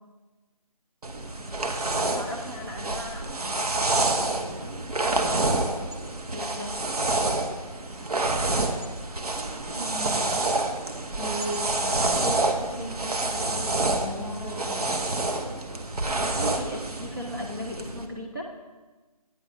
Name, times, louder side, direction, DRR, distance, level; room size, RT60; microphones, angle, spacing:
sound 1, 1.0-18.0, right 2 dB, 70° right, 0.9 m, -28 dB
voice 1, 2.1-4.9 6.3-6.8 16.1-18.5, left 1 dB, 35° right, -2 dB, 0.5 m, -38 dB
voice 2, 9.7-10.4 11.2-14.9, right 1 dB, ahead, -16 dB, 0.8 m, -36 dB
8.8 x 4.9 x 5.0 m, 1.3 s
figure-of-eight pair, 175°, 20 cm